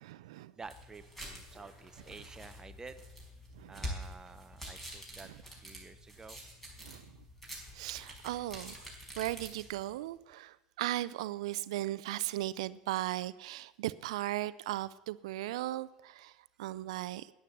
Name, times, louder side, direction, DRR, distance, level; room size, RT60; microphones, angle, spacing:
voice 1, 0.0-0.5 3.5-3.8 6.8-7.2 7.7-8.9 9.2-17.3, right 15 dB, 80° right, 17 dB, 0.4 m, -37 dB
sound 1, 0.6-9.9, equal, 5° left, 4.8 m, -47 dB
voice 2, 0.6-3.0 3.7-5.3 5.6-6.4, right 4 dB, 20° right, 12 dB, 0.7 m, -50 dB
10.0 x 10.0 x 7.3 m, 1.0 s
supercardioid pair, 100°, 3 cm